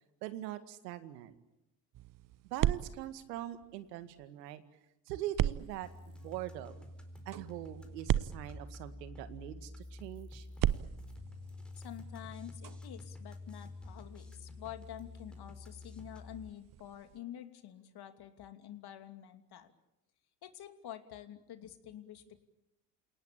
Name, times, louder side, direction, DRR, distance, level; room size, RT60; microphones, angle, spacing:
voice 1, 0.2-1.4 2.5-4.6 5.1-6.9 7.3-10.5, right 13 dB, 80° right, 12 dB, 2.0 m, -42 dB
sound 1, 1.9-4.2 5.4-9.3 10.5-17.2, right 12 dB, 40° right, 0.9 m, -38 dB
sound 2, 5.8-16.5, left 2 dB, ahead, 4.3 m, -49 dB
voice 2, 11.8-19.7 20.4-22.4, left 11 dB, 50° left, 8 dB, 2.8 m, -48 dB
28.5 x 18.5 x 8.9 m, 0.91 s
hypercardioid pair, 70°, 49 cm